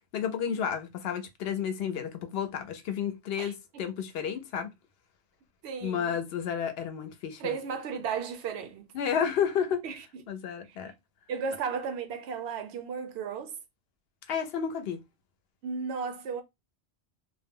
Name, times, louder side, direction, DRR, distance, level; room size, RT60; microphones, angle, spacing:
voice 1, 0.1-4.7 5.8-7.6 8.9-9.8 10.3-10.9 14.3-15.0, left 8 dB, 70° left, 0.8 m, -31 dB
voice 2, 3.4-3.8 5.6-6.1 7.4-8.9 9.8-10.2 10.7-10.8 11.3-13.5 15.6-16.4, right 6 dB, 80° right, 0.8 m, -35 dB
2.2 x 2.0 x 3.5 m
omnidirectional pair, 1.1 m